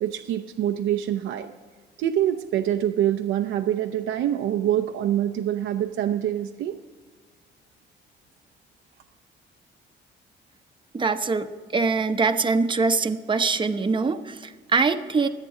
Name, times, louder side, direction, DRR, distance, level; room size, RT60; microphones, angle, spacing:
voice 1, 0.0-1.5 2.0-6.8, right 11 dB, 85° right, 6 dB, 0.7 m, -25 dB
voice 2, 10.9-15.3, right 4 dB, 25° right, 7 dB, 0.8 m, -23 dB
23.5 x 8.3 x 3.8 m, 1.5 s
cardioid pair, 90°, 20 cm